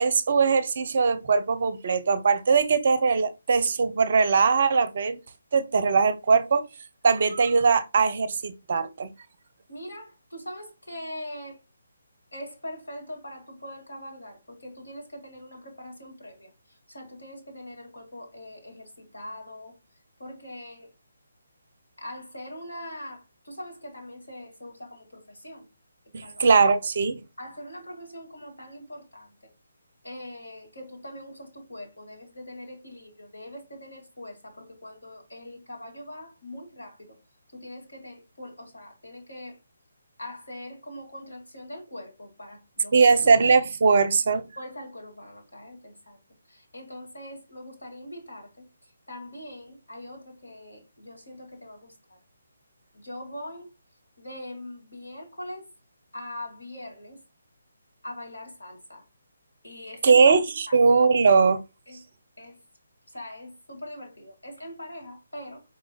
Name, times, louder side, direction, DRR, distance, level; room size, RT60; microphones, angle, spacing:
voice 1, 0.0-5.2 5.5-6.7 7.0-9.1 26.1-27.2 42.9-44.5 60.0-60.4 60.7-61.6, right 5 dB, 45° right, 0.5 m, -20 dB
voice 2, 9.7-11.6 12.3-20.9 22.0-25.7 26.2-26.5 27.4-29.5 30.0-37.2 37.5-39.6 40.2-43.1 44.6-46.2 46.5-52.2 52.9-53.7 54.2-55.7 56.1-57.2 58.0-59.1 59.6-60.4 60.7-60.8 61.9-62.0 62.4-62.6 63.1-65.6, left 1 dB, 70° left, 2.2 m, -42 dB
5.0 x 4.2 x 2.3 m
figure-of-eight pair, 145°, 0 cm